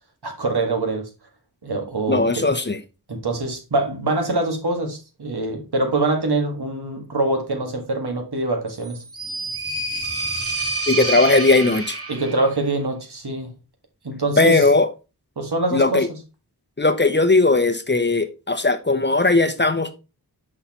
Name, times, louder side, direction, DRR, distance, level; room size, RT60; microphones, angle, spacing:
voice 1, 0.2-1.1 1.6-2.4 3.1-9.0 12.1-13.5 14.0-14.6 15.4-16.0, right 2 dB, 75° right, 1.8 m, -24 dB
voice 2, 2.1-2.8 10.9-12.0 14.4-14.9 15.7-16.1 16.8-19.9, left 3 dB, 30° left, 0.8 m, -18 dB
sound 1, 8.8-12.5, right 3 dB, 35° right, 2.2 m, -27 dB
6.5 x 5.6 x 3.0 m
wide cardioid pair, 55°, 39 cm